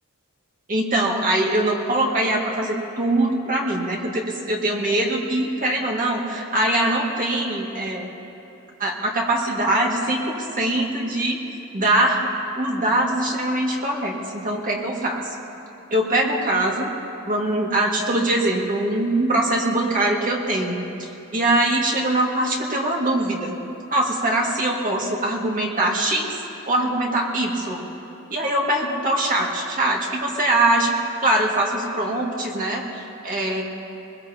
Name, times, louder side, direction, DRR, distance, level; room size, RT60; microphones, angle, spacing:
voice 1, 0.7-8.1 8.8-11.4 11.7-12.3 12.6-15.2 15.9-16.9 17.3-20.8 21.3-23.6 23.9-26.4 26.7-27.9 28.3-31.0 31.2-33.6, right 1 dB, 40° right, -2 dB, 2.1 m, -22 dB
22.5 x 21.5 x 2.9 m, 2.9 s
head